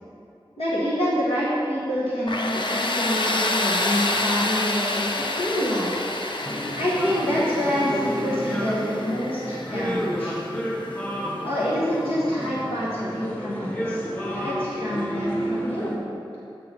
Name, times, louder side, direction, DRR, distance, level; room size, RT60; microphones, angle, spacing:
voice 1, 0.6-5.1 5.4-6.0 6.8-10.4 11.4-16.0, equal, 80° left, -8 dB, 1.3 m, -27 dB
Tools, 2.3-11.0, left 2 dB, 55° left, 0.6 m, -28 dB
sound 1, 6.4-16.0, equal, 15° left, 0.9 m, -30 dB
8.4 x 5.7 x 4.1 m, 2.8 s
wide cardioid pair, 60°, 9 cm